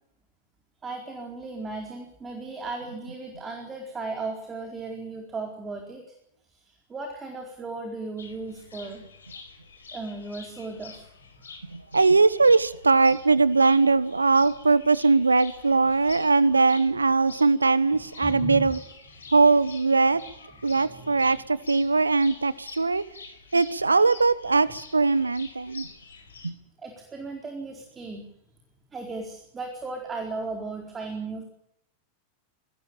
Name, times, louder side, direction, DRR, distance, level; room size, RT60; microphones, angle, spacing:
voice 1, 0.8-6.0 6.5-9.0 9.9-11.1 11.4-11.5 18.2-18.7 20.9-21.1 26.8-28.2 28.9-31.4, right 3 dB, 20° right, 4.4 m, -36 dB
sound 1, 8.2-26.5, left 4 dB, 70° left, 4.6 m, -47 dB
voice 2, 11.7-18.8 19.3-20.2 20.6-23.0 23.5-25.9 26.4-26.5, right 3 dB, 80° right, 1.1 m, -21 dB
23.5 x 18.5 x 8.9 m
figure-of-eight pair, 90°, 0 cm